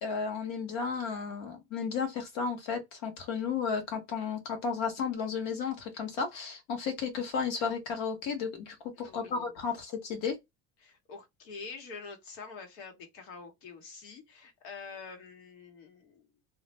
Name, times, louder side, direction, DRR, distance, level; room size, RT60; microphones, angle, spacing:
voice 1, 0.0-10.3, left 5 dB, 50° left, 1.0 m, -33 dB
voice 2, 8.9-9.5 10.8-16.3, left 5 dB, 70° left, 1.2 m, -46 dB
2.4 x 2.0 x 3.0 m
cardioid pair, 180°, 32 cm